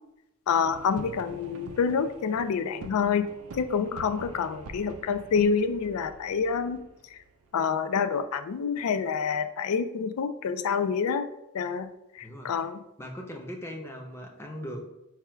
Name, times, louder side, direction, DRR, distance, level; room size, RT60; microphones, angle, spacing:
voice 1, 0.5-3.3 3.6-6.8 7.1-7.2 7.5-11.3 11.5-11.9 12.2-12.8, left 6 dB, 80° left, 11 dB, 0.4 m, -27 dB
sound 1, 0.6-8.2, right 3 dB, 80° right, 0.4 m, -46 dB
voice 2, 12.2-12.7 13.0-14.8, equal, 10° left, 1 dB, 0.5 m, -39 dB
4.7 x 2.3 x 4.3 m, 0.90 s
head